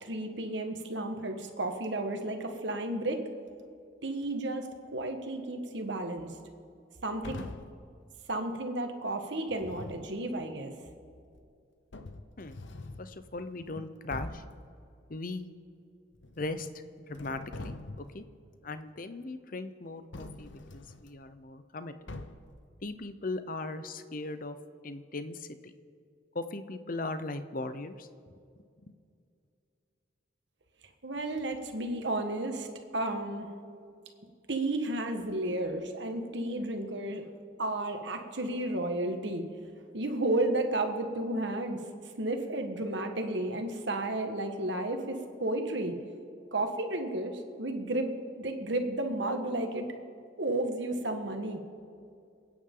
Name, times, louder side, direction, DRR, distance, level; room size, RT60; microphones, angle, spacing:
voice 1, 0.0-3.2 4.0-6.3 7.0-7.3 8.3-10.7 31.0-32.7 32.9-33.5 34.5-37.2 37.6-39.4 39.9-41.8 42.2-46.0 46.5-49.9 50.4-51.6, right 1 dB, 65° right, 5 dB, 1.5 m, -32 dB
sound 1, 7.2-7.8 9.5-10.1 11.4-11.5 11.9-13.1 13.6-13.8 14.1-14.6 16.1-16.8 17.1-18.2 20.1-21.1 22.1-22.6, left 2 dB, 75° left, 0.8 m, -43 dB
voice 2, 13.0-14.4 15.1-15.5 16.4-18.2 18.6-21.9 22.8-24.6 24.8-25.7 26.3-28.1 28.8-28.9, left 2 dB, 45° left, 10 dB, 0.7 m, -38 dB
27.5 x 9.5 x 3.9 m, 2.4 s
head